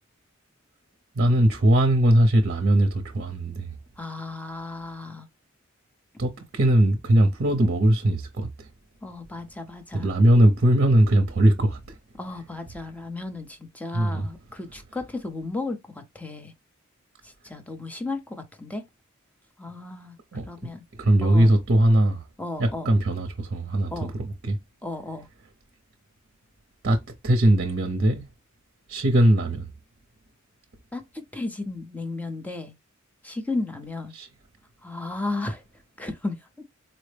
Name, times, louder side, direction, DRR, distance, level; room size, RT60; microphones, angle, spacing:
voice 1, 1.2-3.7 6.2-8.7 9.9-11.8 13.9-14.3 20.3-20.7 21.0-22.2 22.6-23.9 24.2-24.6 26.8-28.2 28.9-29.7 34.1-34.3, right 1 dB, 50° right, 0.6 m, -20 dB
voice 2, 4.0-5.3 9.0-10.1 12.2-16.5 17.2-18.8 19.6-20.2 20.5-20.8 21.2-21.5 22.4-22.9 23.9-24.1 24.8-25.3 30.9-32.7 33.2-34.1 34.8-35.6 36.0-36.6, left 2 dB, 5° left, 0.6 m, -34 dB
4.1 x 2.0 x 3.2 m
head